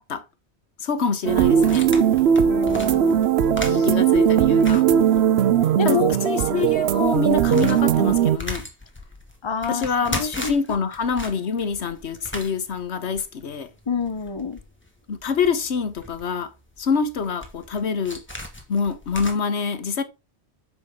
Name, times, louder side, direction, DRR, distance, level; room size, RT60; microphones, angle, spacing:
voice 1, 0.8-1.9 3.6-4.9 5.8-8.7 9.7-13.7 15.1-16.5 16.8-18.2 18.7-20.0, left 5 dB, 90° left, 1.4 m, -26 dB
sound 1, 1.3-8.4, right 9 dB, 75° right, 0.9 m, -19 dB
sound 2, 1.5-5.7 5.9-6.0 6.5-19.3, left 1 dB, 10° left, 2.2 m, -37 dB
voice 2, 2.4-3.3 3.6-3.9 5.8-6.1 9.4-10.6 13.9-14.6, left 5 dB, 30° left, 0.9 m, -27 dB
9.6 x 6.2 x 3.8 m
omnidirectional pair, 1.1 m